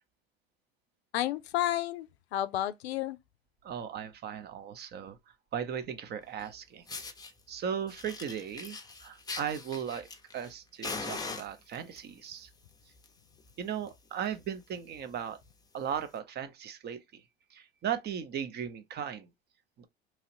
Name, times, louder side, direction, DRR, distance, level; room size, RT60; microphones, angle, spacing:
voice 1, 1.1-3.2, left 13 dB, 80° left, 0.5 m, -31 dB
voice 2, 3.6-5.2 5.5-6.8 7.5-12.5 13.6-15.4 15.7-17.2 17.5-19.3 19.8-19.9, right 8 dB, 35° right, 0.6 m, -37 dB
Fire, 6.4-6.5 6.9-7.3 7.9-10.5 10.8-12.0 12.8-13.1 13.4-13.5 13.9-14.0 14.2-14.5 15.0-15.1 16.0-16.1, left 4 dB, 10° left, 0.6 m, -41 dB
2.9 x 2.4 x 2.8 m
hypercardioid pair, 80°, 31 cm